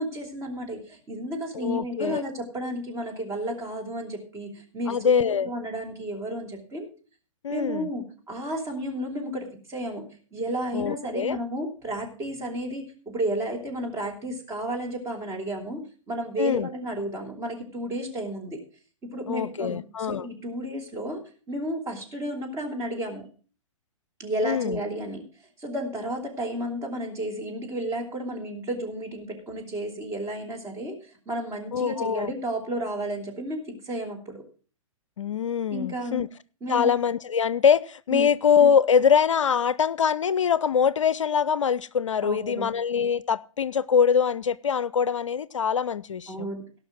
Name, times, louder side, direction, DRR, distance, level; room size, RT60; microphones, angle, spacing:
voice 1, 0.0-6.9 7.5-10.0 10.3-18.6 19.0-19.8 20.1-21.2 21.5-23.2 24.2-25.2 25.6-30.9 31.3-34.4 35.7-36.2 36.6-36.9 38.1-38.3 42.2-42.7 46.3-46.6, right 1 dB, 15° right, 3.1 m, -32 dB
voice 2, 1.5-2.2 4.9-5.5 7.4-7.9 10.7-11.4 16.4-16.7 19.3-20.2 24.4-24.8 31.7-32.3 35.2-36.3 36.7-46.5, left 7 dB, 65° left, 0.5 m, -23 dB
17.0 x 5.9 x 6.1 m
figure-of-eight pair, 115°, 17 cm